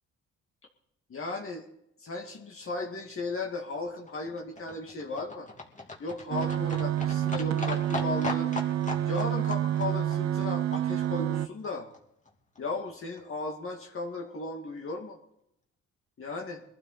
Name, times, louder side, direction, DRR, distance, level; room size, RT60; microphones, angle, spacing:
voice 1, 1.1-1.7 2.0-5.5 6.0-8.5 9.1-11.9 12.6-15.2 16.2-16.6, left 3 dB, 45° left, 1 dB, 2.1 m, -36 dB
Livestock farm animals working animals, 3.5-11.7 11.9-12.0 12.3-12.4 12.6-12.7 12.9-13.0 13.2-13.3 13.5-13.6 13.8-13.9 14.1-14.2, left 3 dB, 25° left, 2.6 m, -40 dB
sound 1, 6.3-11.5, right 11 dB, 60° right, 0.7 m, -28 dB
21.5 x 12.0 x 4.3 m, 0.77 s
cardioid pair, 90°, 30 cm